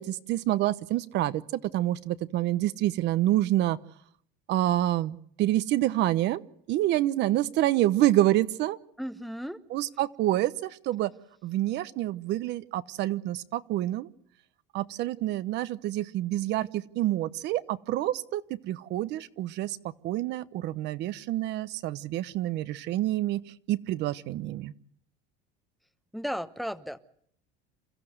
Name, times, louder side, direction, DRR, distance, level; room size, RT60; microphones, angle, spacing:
voice 1, 0.0-3.8 4.5-6.4 6.7-8.8 9.7-11.1 11.4-14.1 14.7-19.8 20.0-24.7, right 14 dB, 55° right, 14 dB, 1.0 m, -27 dB
voice 2, 9.0-9.6 26.1-27.0, equal, ahead, 12 dB, 1.0 m, -34 dB
28.5 x 14.5 x 8.0 m, 0.69 s
cardioid pair, 130°, 21 cm